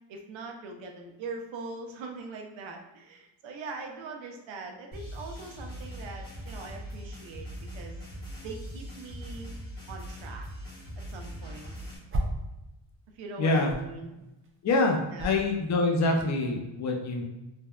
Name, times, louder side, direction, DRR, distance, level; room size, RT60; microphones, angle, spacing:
voice 1, 0.1-7.5 7.7-8.0 8.4-9.5 9.9-10.4 11.0-11.7 13.1-14.1 15.1-15.4, right 3 dB, 70° right, 3 dB, 0.6 m, -41 dB
sound 1, 4.9-12.0, equal, 20° left, 0.9 m, -41 dB
sound 2, 12.1-12.6 12.8-16.6, right 1 dB, 30° right, 0.4 m, -36 dB
voice 2, 13.4-13.7 14.6-17.2, left 2 dB, 35° left, 1 dB, 0.5 m, -25 dB
3.4 x 2.1 x 2.3 m, 0.97 s
cardioid pair, 100°, 47 cm